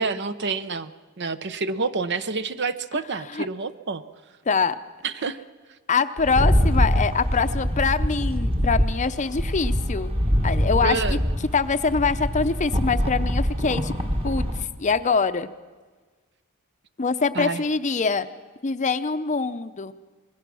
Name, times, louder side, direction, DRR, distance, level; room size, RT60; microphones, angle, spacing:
voice 1, 0.0-4.0 5.0-5.4 10.8-11.2 17.3-17.6, right 4 dB, 55° right, 13 dB, 0.8 m, -28 dB
voice 2, 4.5-4.8 5.9-10.1 10.4-11.2 11.5-13.9 14.2-14.4 14.8-15.5 17.0-18.3 18.6-19.9, left 4 dB, 35° left, 11 dB, 0.6 m, -24 dB
Rattle, 6.2-14.6, equal, 25° right, 1.7 m, -24 dB
25.5 x 21.0 x 6.2 m, 1.4 s
head